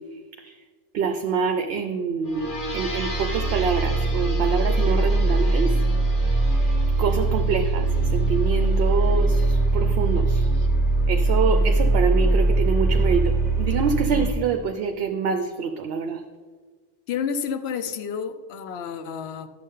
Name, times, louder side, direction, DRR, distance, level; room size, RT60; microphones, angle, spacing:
voice 1, 0.9-5.7 7.0-7.9 8.1-10.5 11.1-16.2, right 6 dB, 65° right, 6 dB, 0.7 m, -26 dB
sound 1, 2.2-14.3, right 2 dB, 45° left, 1.4 m, -21 dB
voice 2, 17.1-19.5, left 7 dB, 65° left, 11 dB, 0.8 m, -30 dB
11.5 x 6.9 x 3.7 m, 1.5 s
omnidirectional pair, 1.3 m